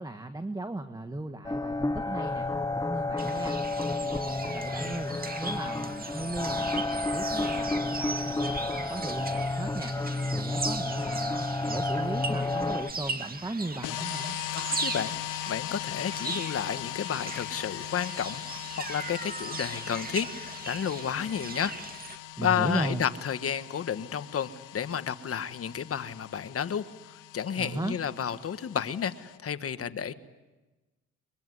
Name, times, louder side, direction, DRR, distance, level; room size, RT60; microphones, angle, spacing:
voice 1, 0.0-2.5 2.8-3.6 4.0-10.0 10.3-14.4 22.4-23.1 27.6-28.0, right 2 dB, 15° right, 8 dB, 1.4 m, -36 dB
sound 1, 1.4-12.9, left 2 dB, 10° left, 1.0 m, -31 dB
sound 2, 3.2-22.2, right 3 dB, 30° right, 2.3 m, -38 dB
sound 3, 13.8-29.4, left 15 dB, 85° left, 0.8 m, -40 dB
voice 2, 14.5-15.1 15.5-21.7 22.4-26.8 27.3-30.1, left 8 dB, 50° left, 11 dB, 1.4 m, -31 dB
24.0 x 22.0 x 9.7 m, 1.1 s
cardioid pair, 90°, 30 cm